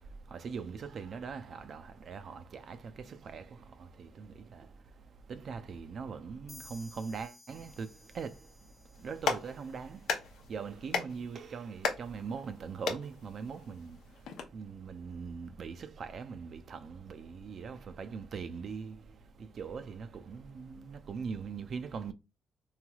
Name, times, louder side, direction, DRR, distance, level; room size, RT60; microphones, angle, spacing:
voice 1, 0.3-2.8 3.1-3.5 4.0-4.7 5.3-7.9 8.1-8.3 9.0-10.0 10.5-14.0 14.5-19.0 19.6-22.1, right 5 dB, 55° right, 0.4 m, -41 dB
sound 1, 6.5-10.1, left 2 dB, 20° left, 0.6 m, -56 dB
Clapping, 8.9-14.4, left 6 dB, 80° left, 0.6 m, -38 dB
3.2 x 2.7 x 2.3 m
cardioid pair, 90°, 0 cm